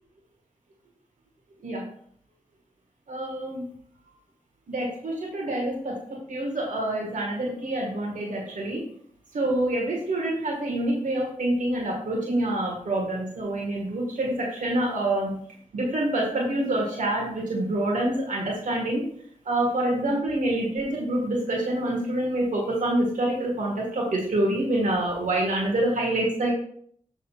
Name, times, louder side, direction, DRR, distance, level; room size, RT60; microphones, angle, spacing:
voice 1, 3.1-3.7 4.7-8.8 9.3-15.4 15.7-19.0 19.4-26.5, right 1 dB, 80° right, -2 dB, 1.7 m, -26 dB
7.2 x 6.4 x 2.4 m, 0.62 s
cardioid pair, 45°, 13 cm